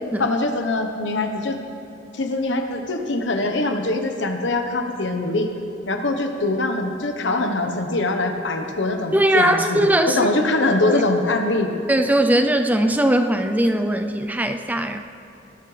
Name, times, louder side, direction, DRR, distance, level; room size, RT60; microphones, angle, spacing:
voice 1, 0.2-1.6 2.1-5.5 5.9-11.7, left 2 dB, 70° left, 5 dB, 1.2 m, -23 dB
voice 2, 9.1-10.3 10.9-11.0 11.9-15.0, right 1 dB, 10° right, 6 dB, 0.5 m, -20 dB
19.5 x 11.5 x 3.4 m, 2.9 s
head